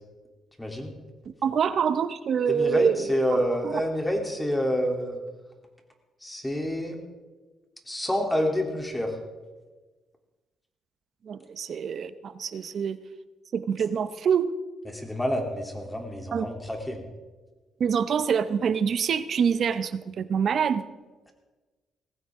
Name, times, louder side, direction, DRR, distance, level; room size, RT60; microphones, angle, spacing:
voice 1, 0.6-0.9 2.5-5.2 6.2-7.0 7.9-9.2 14.8-17.1, equal, 10° left, 2 dB, 3.1 m, -28 dB
voice 2, 1.4-3.1 3.6-3.7 11.3-13.0 13.5-14.6 16.3-16.4 17.8-20.8, right 7 dB, 55° right, 13 dB, 0.8 m, -25 dB
19.5 x 15.5 x 3.7 m, 1.3 s
cardioid pair, 90°, 0 cm